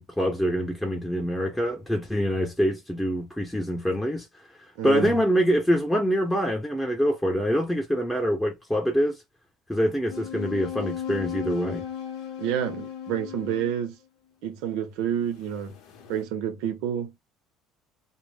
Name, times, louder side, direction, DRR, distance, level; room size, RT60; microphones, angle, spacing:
voice 1, 0.0-4.3 4.8-9.2 9.7-11.9, equal, 5° left, 0.7 m, -25 dB
voice 2, 4.8-5.1 12.4-14.0 14.4-15.8 16.1-17.2, right 9 dB, 80° right, 0.7 m, -29 dB
sound 1, 10.1-13.9 15.5-16.2, left 9 dB, 70° left, 0.7 m, -36 dB
2.1 x 2.0 x 3.3 m
supercardioid pair, 110°, 0 cm